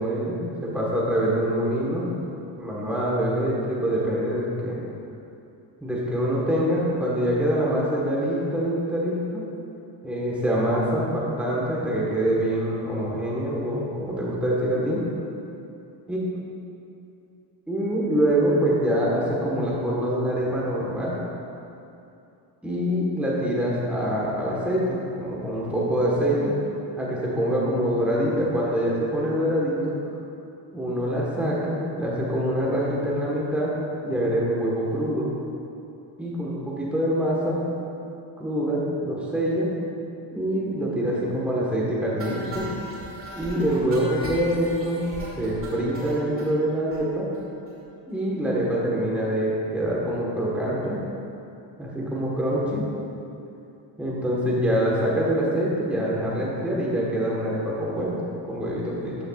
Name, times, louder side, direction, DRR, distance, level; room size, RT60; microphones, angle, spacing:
voice 1, 0.0-2.1 2.6-4.8 5.8-9.4 10.0-15.0 16.1-16.2 17.7-21.2 22.6-26.6 26.9-29.9 30.7-33.8 34.0-35.3 36.2-37.6 38.4-39.7 40.3-42.7 43.4-45.0 45.4-47.3 48.1-51.0 51.8-52.9 54.0-58.2 58.4-59.2, equal, 5° right, -6 dB, 1.3 m, -25 dB
sound 1, 42.2-46.5 46.9-47.0 47.3-47.4 47.7-47.8 48.1-48.2, right 1 dB, 30° right, 1.6 m, -38 dB
13.0 x 6.9 x 2.4 m, 2.7 s
cardioid pair, 155°, 45 cm